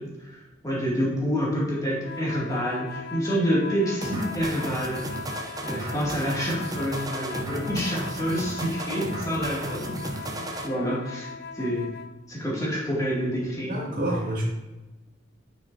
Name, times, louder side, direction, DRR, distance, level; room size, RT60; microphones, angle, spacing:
voice 1, 0.0-5.0 5.6-11.9 12.3-14.0, equal, 20° left, -5 dB, 2.4 m, -28 dB
sound 1, 2.0-12.2, left 5 dB, 55° left, 0.5 m, -39 dB
sound 2, 4.0-10.7, right 2 dB, 20° right, 0.6 m, -35 dB
voice 2, 13.7-14.4, right 1 dB, 45° right, -5 dB, 2.3 m, -28 dB
9.1 x 6.4 x 2.7 m, 1.1 s
head